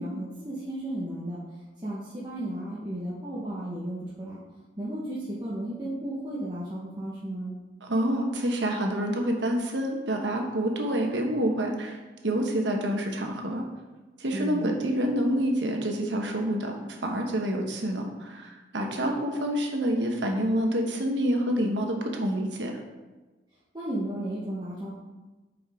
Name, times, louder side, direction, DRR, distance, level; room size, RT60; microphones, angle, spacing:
voice 1, 0.0-1.4 1.8-4.4 4.8-7.5 14.3-14.7 19.0-19.2 23.7-24.9, right 1 dB, 25° right, -9 dB, 1.2 m, -34 dB
voice 2, 7.8-12.0 12.2-13.6 14.2-22.8, right 1 dB, 85° right, 2 dB, 1.2 m, -27 dB
8.7 x 5.0 x 3.7 m, 1.2 s
head